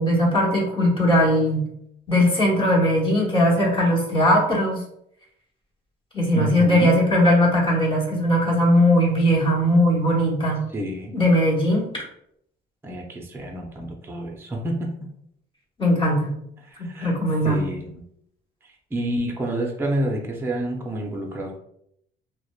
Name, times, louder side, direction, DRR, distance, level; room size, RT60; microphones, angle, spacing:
voice 1, 0.0-1.7 2.1-4.8 6.1-10.7 11.1-11.9 15.8-16.4 16.8-17.6, equal, 25° left, -4 dB, 1.1 m, -19 dB
voice 2, 6.3-7.0 10.7-11.1 12.8-15.1 16.6-17.1 17.4-18.0 18.6-21.6, right 1 dB, 10° right, 1 dB, 0.4 m, -29 dB
2.9 x 2.1 x 2.3 m, 0.73 s
cardioid pair, 90°, 20 cm